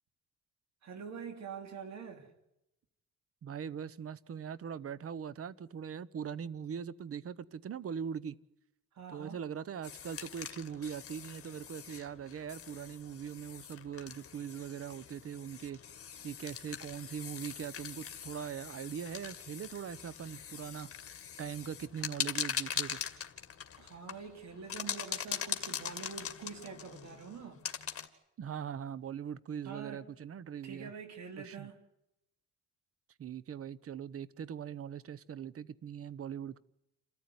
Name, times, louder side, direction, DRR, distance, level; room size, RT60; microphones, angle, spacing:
voice 1, 0.8-2.3 8.9-9.4 23.8-27.6 29.6-30.1 30.6-31.8, right 6 dB, 65° right, 2.7 m, -45 dB
voice 2, 3.4-8.4 9.1-15.8 16.2-20.9 21.4-23.0 28.4-30.9 31.4-31.7 33.2-36.6, right 8 dB, 50° right, 1.0 m, -41 dB
sound 1, 9.8-28.1, left 8 dB, 50° left, 2.2 m, -42 dB
28.5 x 14.0 x 9.7 m
cardioid pair, 90°, 30 cm